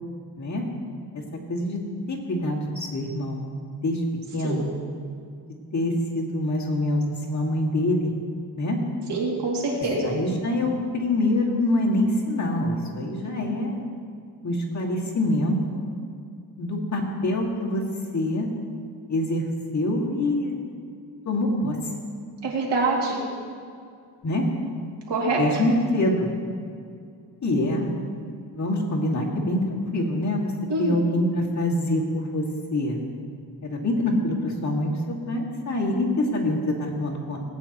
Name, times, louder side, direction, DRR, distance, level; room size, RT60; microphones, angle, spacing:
voice 1, 2.1-3.5 3.8-4.0 4.3-4.7 5.7-7.0 7.3-8.1 8.6-8.8 10.0-13.8 14.4-15.8 16.6-17.8 18.1-18.5 19.1-19.4 19.7-20.6 21.3-21.8 24.2-24.5 25.4-26.3 27.4-27.9 28.5-30.5 30.8-32.4 32.7-33.0 33.6-37.4, left 1 dB, 45° left, -2 dB, 2.1 m, -25 dB
voice 2, 9.1-10.1 22.4-23.2 25.1-25.6 30.7-31.0, right 2 dB, 85° right, -3 dB, 2.6 m, -25 dB
18.0 x 9.2 x 3.0 m, 2.3 s
cardioid pair, 95°, 40 cm